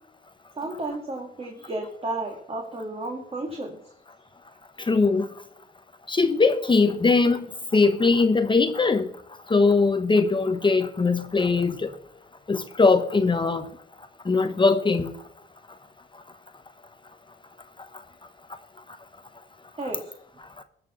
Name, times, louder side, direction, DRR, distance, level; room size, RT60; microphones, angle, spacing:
voice 1, 0.5-3.8 19.8-20.1, right 2 dB, 30° right, 2.1 m, -33 dB
voice 2, 4.8-5.3 6.1-7.4 7.7-9.1 9.5-11.9 12.5-13.7 14.3-15.1, left 4 dB, 25° left, 1.0 m, -21 dB
14.0 x 6.0 x 6.9 m
cardioid pair, 90°, 20 cm